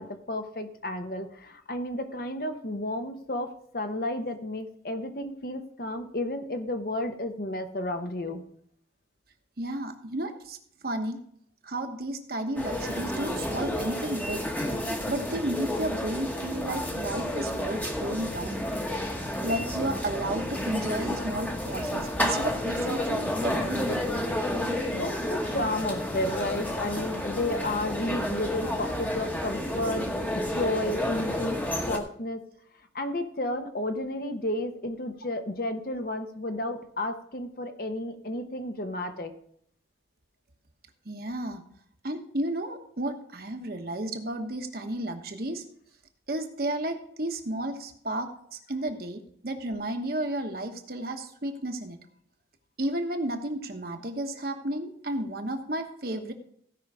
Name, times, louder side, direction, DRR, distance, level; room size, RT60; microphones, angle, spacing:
voice 1, 0.0-8.4 24.9-30.1 30.3-31.6 31.9-32.4 32.9-39.3, left 1 dB, 50° left, 7 dB, 1.0 m, -32 dB
voice 2, 9.6-10.6 10.8-11.2 11.6-14.5 15.1-18.7 19.4-24.1 41.0-41.6 42.0-45.6 46.3-52.0 52.8-56.3, right 1 dB, 55° right, 5 dB, 1.2 m, -32 dB
sound 1, 12.6-32.0, left 1 dB, 10° left, 1.1 m, -31 dB
16.0 x 5.5 x 4.8 m, 0.67 s
head